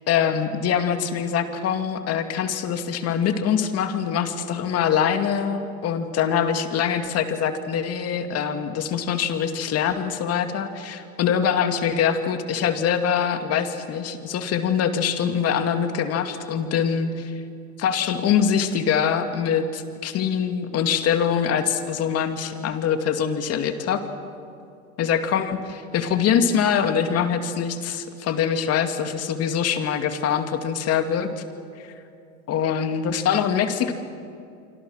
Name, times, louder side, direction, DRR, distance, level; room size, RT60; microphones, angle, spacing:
voice 1, 0.1-17.3 17.8-24.0 25.0-31.4 31.8-31.9 32.5-33.9, left 7 dB, 35° left, 7 dB, 2.3 m, -24 dB
27.0 x 25.5 x 6.4 m, 2.6 s
hypercardioid pair, 115°, 43 cm